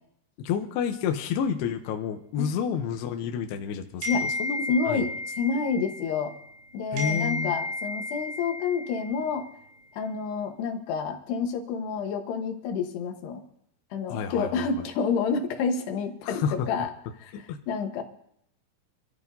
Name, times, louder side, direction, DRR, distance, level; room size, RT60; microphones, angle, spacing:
voice 1, 0.4-4.6 4.9-5.0 6.9-7.6 14.1-14.7 16.2-16.7 17.3-17.6, left 7 dB, 85° left, 5 dB, 2.4 m, -30 dB
sound 1, 4.0-6.6 7.0-9.5, left 2 dB, 90° right, 6.5 m, -33 dB
voice 2, 4.7-5.1 5.4-6.3 6.7-9.5 9.9-13.4 13.9-16.9 17.2-18.0, left 5 dB, 70° left, 4 dB, 2.9 m, -29 dB
27.5 x 13.0 x 2.7 m, 0.70 s
omnidirectional pair, 5.7 m